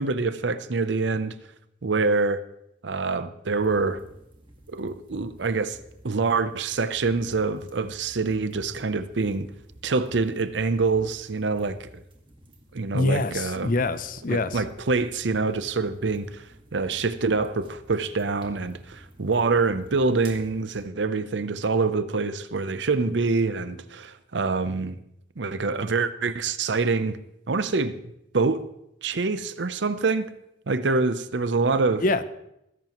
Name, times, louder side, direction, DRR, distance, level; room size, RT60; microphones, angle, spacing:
voice 1, 0.0-1.4 1.8-2.4 2.8-4.0 4.7-5.8 6.0-9.5 9.8-11.9 12.7-13.7 14.3-16.4 16.7-25.0 25.4-27.2 27.5-28.0 28.3-28.7 29.0-30.3 30.7-32.0, right 4 dB, 70° right, 0.7 m, -25 dB
sound 1, 3.5-20.9, right 1 dB, 25° right, 1.9 m, -52 dB
voice 2, 12.9-14.6 32.0-32.2, left 2 dB, 50° left, 0.6 m, -25 dB
20.5 x 11.0 x 3.1 m
head